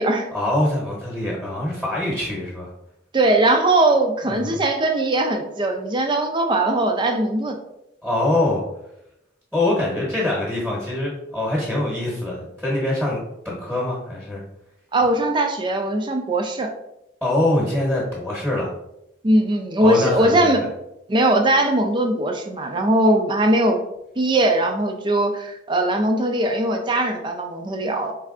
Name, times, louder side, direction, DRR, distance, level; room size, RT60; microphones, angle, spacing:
voice 1, 0.3-2.7 4.3-4.6 8.0-8.6 9.5-14.4 17.2-18.7 19.8-20.6, left 1 dB, 5° left, -6 dB, 1.0 m, -24 dB
voice 2, 3.1-7.6 14.9-16.7 19.2-20.6 21.1-23.8 24.2-28.1, right 1 dB, 25° right, 4 dB, 0.4 m, -20 dB
4.3 x 3.4 x 2.4 m, 0.83 s
head